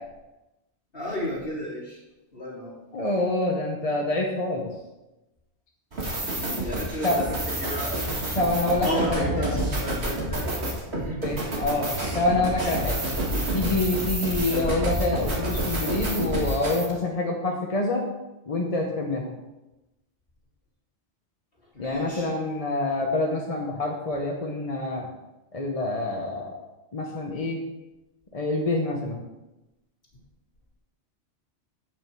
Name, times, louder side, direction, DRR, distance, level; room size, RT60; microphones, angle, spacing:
voice 1, 0.9-2.0 2.3-2.7 6.3-8.1 8.8-11.4 14.3-14.6 21.7-22.3, equal, 55° left, -6 dB, 3.2 m, -33 dB
voice 2, 2.9-4.7 7.0-7.2 8.3-9.5 11.2-11.9 12.1-13.0 13.5-18.0 18.5-19.3 21.8-25.1 25.5-26.6 26.9-27.6 28.3-29.2, left 2 dB, 35° left, 0 dB, 0.9 m, -26 dB
sound 1, 5.9-16.9, right 1 dB, 65° right, 2.1 m, -29 dB
8.3 x 6.2 x 4.5 m, 1.0 s
omnidirectional pair, 1.2 m